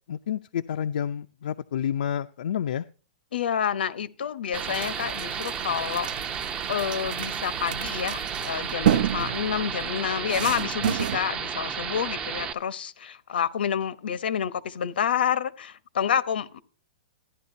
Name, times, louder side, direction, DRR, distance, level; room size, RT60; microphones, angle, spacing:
voice 1, 0.1-2.8, left 9 dB, 70° left, 0.5 m, -29 dB
voice 2, 3.3-6.1 6.7-16.6, left 8 dB, 85° left, 0.9 m, -28 dB
sound 1, 4.5-12.5, right 7 dB, 15° right, 0.6 m, -33 dB
sound 2, 4.5-11.2, right 10 dB, 60° right, 0.6 m, -31 dB
14.5 x 10.5 x 2.7 m
hypercardioid pair, 170°, 5 cm